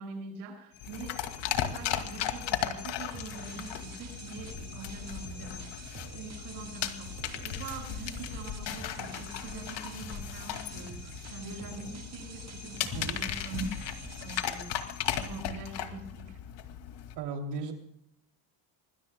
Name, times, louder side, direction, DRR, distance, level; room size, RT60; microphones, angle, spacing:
voice 1, 0.0-16.4, right 3 dB, 90° right, 3 dB, 6.6 m, -44 dB
sound 1, 0.7-15.4, left 10 dB, 85° left, 4.3 m, -50 dB
sound 2, 0.8-17.1, left 10 dB, 60° left, 2.3 m, -37 dB
sound 3, 3.1-14.4, right 6 dB, 35° right, 2.1 m, -48 dB
voice 2, 17.1-17.7, right 4 dB, 55° right, 3 dB, 2.9 m, -36 dB
26.5 x 21.0 x 2.2 m, 0.74 s
cardioid pair, 135°, 48 cm